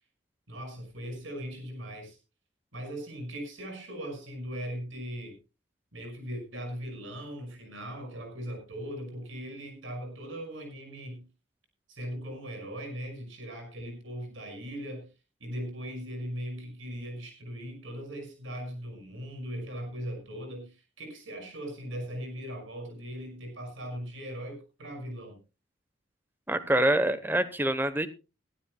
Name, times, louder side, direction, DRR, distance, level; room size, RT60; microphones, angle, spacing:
voice 1, 0.5-2.2 2.7-5.4 5.9-11.2 11.9-15.1 15.4-25.4, equal, 85° right, 5 dB, 5.8 m, -39 dB
voice 2, 26.5-28.1, right 1 dB, 10° right, 12 dB, 0.9 m, -25 dB
22.0 x 12.5 x 2.2 m, 0.29 s
head